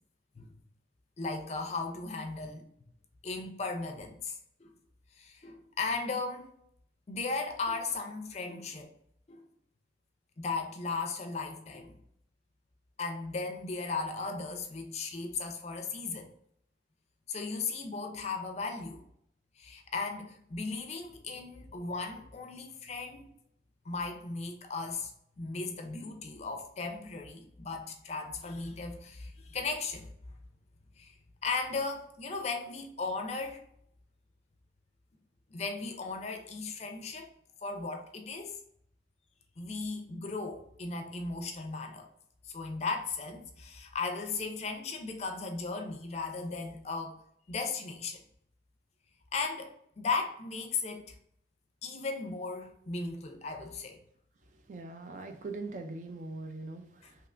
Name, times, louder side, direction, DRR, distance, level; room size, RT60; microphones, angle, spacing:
voice 1, 1.2-2.7 3.2-4.7 5.2-6.5 7.1-8.9 9.3-9.4 10.4-11.9 13.0-16.3 17.3-19.0 19.6-23.3 23.9-25.1 25.4-30.1 31.0-31.1 31.4-33.6 35.5-37.3 37.6-38.6 39.6-42.1 42.4-47.2 47.5-48.2 49.3-51.1 51.8-54.0, left 4 dB, 35° left, 0.4 m, -36 dB
voice 2, 54.5-57.3, right 3 dB, 45° right, 0.4 m, -42 dB
3.2 x 2.9 x 2.4 m
head